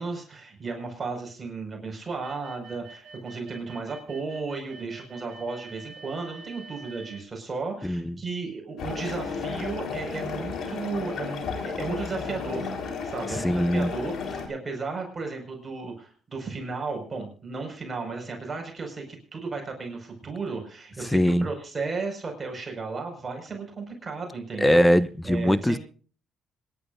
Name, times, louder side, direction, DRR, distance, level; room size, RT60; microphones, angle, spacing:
voice 1, 0.0-24.8 25.2-25.8, right 4 dB, 30° right, 5.4 m, -34 dB
sound 1, 2.2-7.2, right 4 dB, 55° right, 7.6 m, -47 dB
voice 2, 7.8-8.1 13.3-13.9 21.1-21.5 24.6-25.8, equal, 10° left, 0.7 m, -21 dB
sound 2, 8.8-14.5, left 5 dB, 65° left, 4.0 m, -33 dB
26.5 x 11.0 x 2.6 m
cardioid pair, 90°, 0 cm